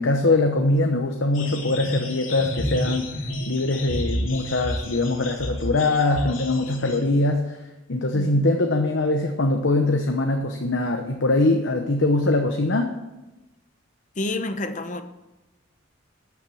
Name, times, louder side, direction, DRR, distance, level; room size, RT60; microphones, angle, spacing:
voice 1, 0.0-3.1 3.5-7.6 7.9-12.9, left 2 dB, 65° left, 0.9 m, -22 dB
sound 1, 1.3-7.0, equal, 85° left, 2.4 m, -30 dB
voice 2, 14.2-15.0, left 2 dB, 40° left, 0.8 m, -29 dB
13.5 x 5.9 x 7.6 m
head